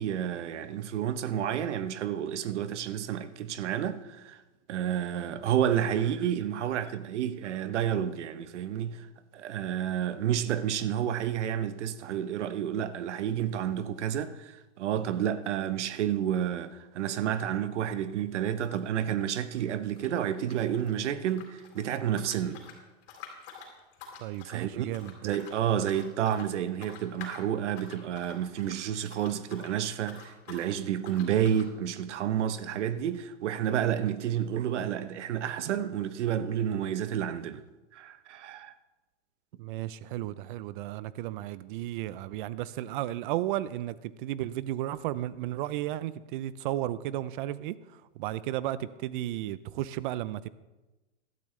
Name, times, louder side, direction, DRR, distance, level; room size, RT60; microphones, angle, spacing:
voice 1, 0.0-4.4 4.7-9.1 9.3-22.6 24.4-24.9 25.2-37.6 37.9-38.7, right 10 dB, 70° right, 1.0 m, -30 dB
sound 1, 17.9-18.1 18.4-20.9 21.2-29.8 30.0-30.7 31.0-31.7, left 6 dB, 50° left, 3.6 m, -49 dB
voice 2, 24.2-25.3 39.6-50.5, right 14 dB, 45° right, 0.6 m, -34 dB
16.0 x 12.5 x 3.2 m
hypercardioid pair, 130°, 37 cm